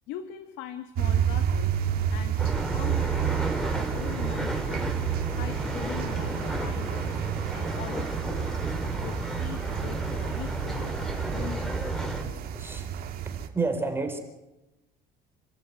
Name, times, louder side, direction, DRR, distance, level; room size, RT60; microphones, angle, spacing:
voice 1, 0.1-1.8 2.1-4.9 5.3-7.2 7.5-8.6 9.0-11.0 11.3-12.4, left 11 dB, 80° left, 8 dB, 1.9 m, -42 dB
sound 1, 1.0-13.5, right 9 dB, 60° right, 2.9 m, -30 dB
sound 2, 2.4-12.2, right 1 dB, 5° left, 3.9 m, -32 dB
voice 2, 12.5-14.2, right 3 dB, 15° right, 4 dB, 4.1 m, -32 dB
29.5 x 13.5 x 9.3 m, 0.98 s
cardioid pair, 135°, 18 cm